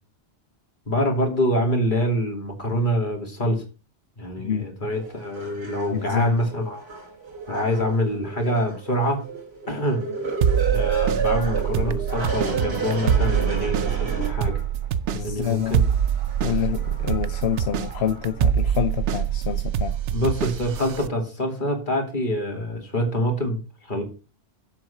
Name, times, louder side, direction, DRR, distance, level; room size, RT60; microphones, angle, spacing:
voice 1, 0.9-3.6 4.2-6.8 7.5-9.2 9.7-10.0 10.7-14.6 15.2-15.8 16.5-16.7 20.1-24.0, equal, 45° left, 2.9 m, -25 dB
voice 2, 4.4-4.7 5.9-6.4 15.1-15.8 16.4-19.9, left 9 dB, 70° left, 1.0 m, -27 dB
sound 1, 4.9-14.9 15.4-18.5 19.1-19.2, right 5 dB, 65° right, 3.7 m, -32 dB
sound 2, 10.4-21.1, right 9 dB, 85° right, 1.0 m, -25 dB
7.8 x 7.2 x 5.9 m
omnidirectional pair, 1.1 m